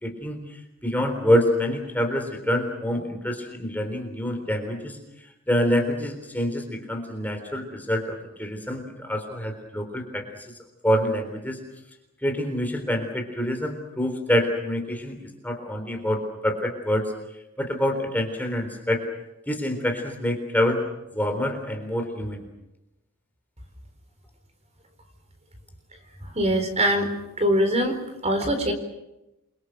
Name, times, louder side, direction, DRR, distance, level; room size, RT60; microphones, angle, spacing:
voice 1, 0.0-10.5 10.8-11.6 12.2-15.2 15.4-17.1 17.6-19.1 19.5-20.8 21.1-22.4, equal, 10° left, 3 dB, 3.8 m, -26 dB
voice 2, 26.3-28.0 28.2-28.7, equal, 30° right, 7 dB, 4.3 m, -23 dB
29.0 x 24.0 x 6.7 m, 0.93 s
head